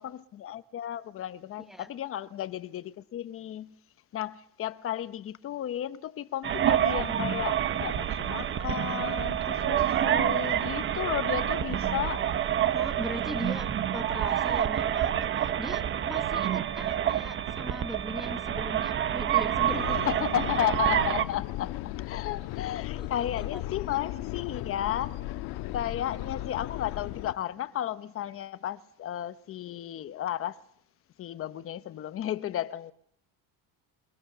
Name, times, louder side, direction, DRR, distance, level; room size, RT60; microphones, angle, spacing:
voice 1, 0.0-3.7 4.1-12.3 20.0-21.8 22.0-30.6 31.2-32.9, left 11 dB, 35° left, 1.0 m, -34 dB
sound 1, 6.4-21.2, right 10 dB, 30° right, 1.0 m, -28 dB
voice 2, 12.7-20.1 23.0-23.6, equal, ahead, 1.0 m, -40 dB
sound 2, 19.6-27.3, left 15 dB, 90° left, 1.4 m, -36 dB
29.0 x 24.0 x 6.8 m
cardioid pair, 175°, 38 cm